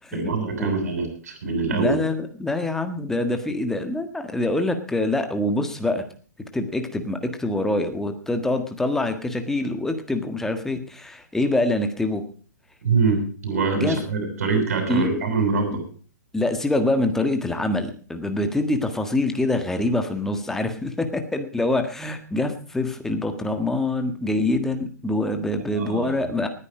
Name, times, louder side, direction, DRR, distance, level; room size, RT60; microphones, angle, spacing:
voice 1, 0.1-2.0 12.8-15.8 25.7-26.2, right 4 dB, 55° right, 5 dB, 7.1 m, -24 dB
voice 2, 1.7-6.1 6.5-12.2 13.7-14.0 14.9-15.2 16.3-26.5, left 2 dB, 5° left, 7 dB, 1.6 m, -25 dB
19.0 x 9.9 x 5.0 m, 0.42 s
figure-of-eight pair, 115°, 10 cm